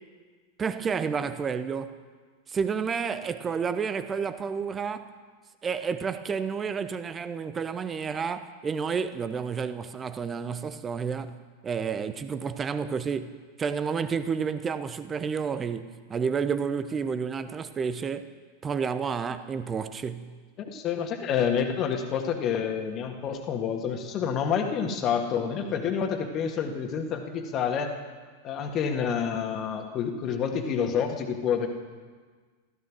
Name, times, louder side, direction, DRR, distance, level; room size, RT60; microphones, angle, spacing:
voice 1, 0.6-2.0 2.5-5.1 5.6-18.3 18.6-20.4, right 6 dB, 20° right, 12 dB, 0.9 m, -30 dB
voice 2, 20.6-27.9 28.4-31.7, left 7 dB, 35° left, 4 dB, 1.9 m, -28 dB
15.5 x 14.5 x 6.3 m, 1.5 s
figure-of-eight pair, 90°, 0 cm